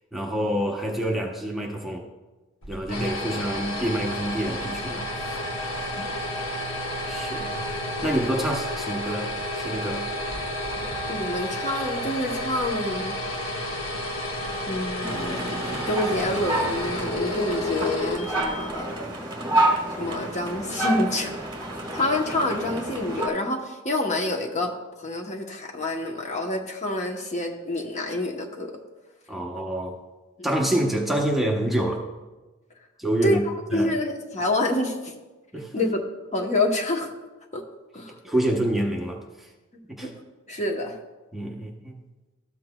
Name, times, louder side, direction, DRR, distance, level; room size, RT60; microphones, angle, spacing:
voice 1, 0.1-2.0 2.7-5.1 7.1-7.6 8.0-10.0 29.3-29.9 30.4-32.0 33.0-33.4 33.7-33.9 35.5-35.9 38.2-39.2 39.9-40.1 41.3-42.0, right 1 dB, ahead, -1 dB, 0.8 m, -27 dB
sound 1, 2.6-18.8, left 1 dB, 75° left, 1.3 m, -31 dB
voice 2, 11.1-13.2 13.6-13.7 14.7-18.9 19.2-19.3 20.0-21.3 21.9-24.7 25.0-28.8 30.4-30.5 33.2-35.1 35.7-36.0 36.3-37.1 37.5-37.6 37.9-38.2 40.0-40.1 40.5-41.0, left 1 dB, 35° left, 1 dB, 0.9 m, -27 dB
sound 2, 15.0-23.3, right 1 dB, 20° right, 1.5 m, -29 dB
13.0 x 7.7 x 2.2 m, 1.2 s
head